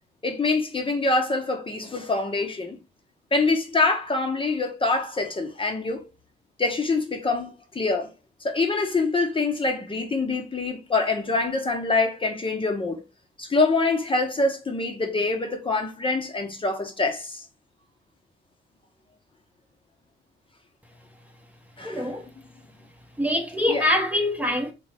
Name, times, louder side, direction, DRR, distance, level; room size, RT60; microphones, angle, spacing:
voice 1, 0.2-2.8 3.3-6.1 6.6-8.1 8.4-13.0 13.4-17.4 21.8-22.1 23.7-23.8, left 3 dB, 25° left, 0.9 m, -25 dB
voice 2, 21.8-22.3 23.2-24.7, left 1 dB, 5° right, 1.0 m, -24 dB
4.0 x 3.4 x 3.3 m
cardioid pair, 90°, 20 cm